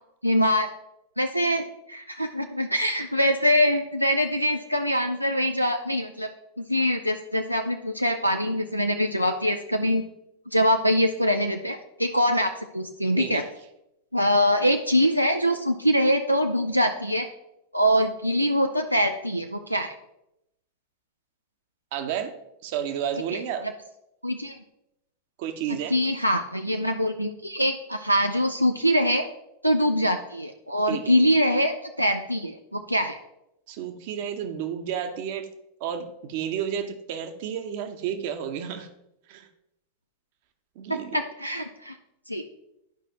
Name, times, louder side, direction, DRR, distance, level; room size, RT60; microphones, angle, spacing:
voice 1, 0.2-0.7 1.2-6.3 6.6-10.0 10.5-13.4 14.1-17.3 17.7-19.9 23.3-23.4 24.2-24.6 25.9-29.3 29.6-33.2 40.9-42.0 42.3-42.4, equal, 90° right, 5 dB, 0.4 m, -24 dB
voice 2, 13.2-13.5 21.9-22.3 22.6-23.7 25.4-25.9 30.9-31.0 33.7-35.5 35.8-38.9 39.3-39.5 40.8-41.2, right 9 dB, 50° right, 8 dB, 0.9 m, -31 dB
12.0 x 5.0 x 2.9 m, 0.84 s
figure-of-eight pair, 90°, 0 cm